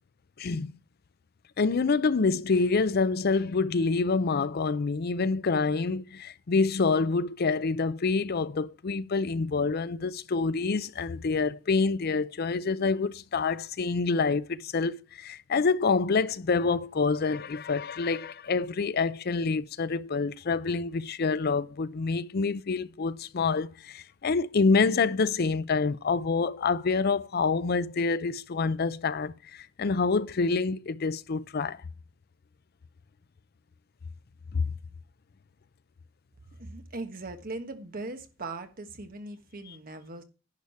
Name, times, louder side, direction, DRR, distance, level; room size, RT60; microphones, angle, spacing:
voice 1, 0.4-0.7 1.6-31.8 34.5-34.7, left 4 dB, 50° left, 0.5 m, -27 dB
voice 2, 36.5-40.2, right 2 dB, 45° right, 1.5 m, -39 dB
10.5 x 4.9 x 6.9 m
head